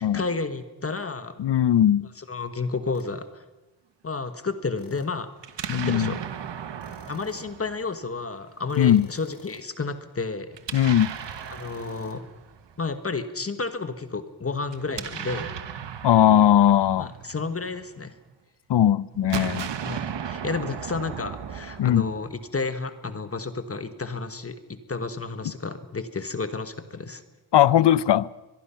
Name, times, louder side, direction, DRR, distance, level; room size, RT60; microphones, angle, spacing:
voice 1, 0.0-1.3 2.2-3.4 4.0-5.3 5.7-6.2 7.1-10.5 11.5-12.2 12.8-15.6 17.0-18.1 19.8-27.2, left 4 dB, 35° left, 1.3 m, -31 dB
voice 2, 1.4-2.1 5.7-6.1 8.8-9.0 10.7-11.1 16.0-17.1 18.7-19.7 21.8-22.1 27.5-28.3, left 11 dB, 80° left, 0.7 m, -19 dB
sound 1, 2.9-3.2 4.8-5.3 6.8-7.6 8.7-9.8 11.0-12.2, left 5 dB, 55° left, 2.7 m, -51 dB
Explosion, 5.4-8.5 10.5-12.8 14.7-18.1 19.1-22.5, right 8 dB, 85° right, 1.3 m, -36 dB
23.0 x 22.5 x 5.7 m
wide cardioid pair, 125°, 42 cm